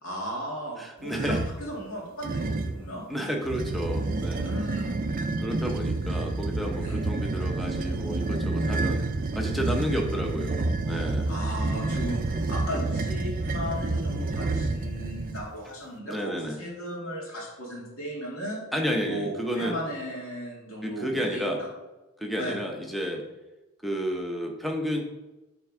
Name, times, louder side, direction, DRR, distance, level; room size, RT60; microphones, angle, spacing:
voice 1, 0.0-3.0 4.4-5.0 6.8-7.0 11.3-18.6 19.0-21.7 22.4-22.6, equal, 70° left, -3 dB, 2.0 m, -36 dB
voice 2, 0.8-1.4 3.1-4.5 5.4-9.0 9.3-11.3 16.1-16.6 18.7-19.8 20.8-21.6 22.2-23.2 23.8-25.0, equal, ahead, 1 dB, 0.8 m, -31 dB
sound 1, 1.1-1.6 2.2-2.8 3.4-15.4, right 2 dB, 40° right, 0.4 m, -29 dB
7.7 x 3.6 x 4.8 m, 1.1 s
head